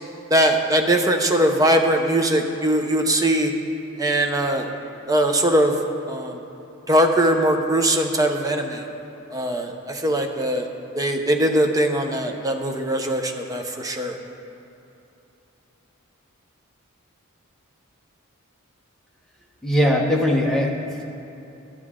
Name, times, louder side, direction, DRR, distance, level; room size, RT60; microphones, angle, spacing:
voice 1, 0.3-3.5 4.0-4.7 5.1-5.8 6.1-6.4 6.9-8.9 9.3-10.7 10.9-14.2, right 1 dB, 15° right, 4 dB, 0.6 m, -21 dB
voice 2, 19.6-21.0, equal, ahead, -2 dB, 0.9 m, -20 dB
12.5 x 10.5 x 3.7 m, 2.9 s
head